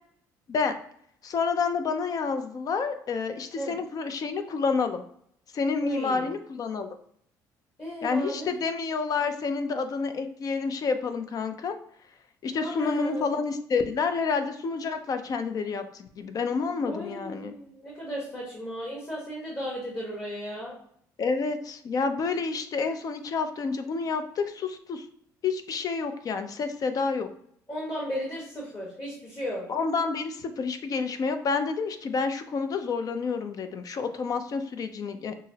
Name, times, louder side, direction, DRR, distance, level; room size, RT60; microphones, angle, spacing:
voice 1, 1.2-5.0 5.5-6.9 8.0-11.8 12.4-17.5 21.2-25.1 25.4-27.3 29.7-35.3, left 5 dB, 50° left, 8 dB, 0.5 m, -29 dB
voice 2, 5.8-6.3 7.8-8.6 12.6-13.4 16.9-20.8 27.7-29.7, equal, 30° left, -4 dB, 1.3 m, -35 dB
6.1 x 2.0 x 2.7 m, 0.66 s
supercardioid pair, 80°, 8 cm